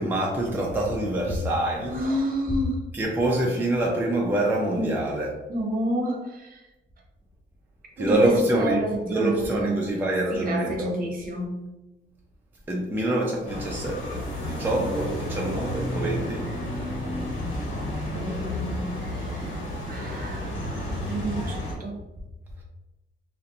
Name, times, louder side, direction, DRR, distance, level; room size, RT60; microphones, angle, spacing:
voice 1, 0.0-2.0 2.9-5.3 8.0-10.9 12.7-16.5, right 1 dB, 10° right, -2 dB, 0.4 m, -26 dB
voice 2, 1.9-2.8 4.7-5.0 5.5-6.7 8.0-9.9 10.3-11.7 14.5-14.9 18.0-22.0, right 1 dB, 45° right, 0 dB, 0.8 m, -30 dB
sound 1, 13.4-21.7, left 1 dB, 90° left, 0.8 m, -31 dB
2.5 x 2.1 x 2.7 m, 1.0 s
cardioid pair, 90°, 20 cm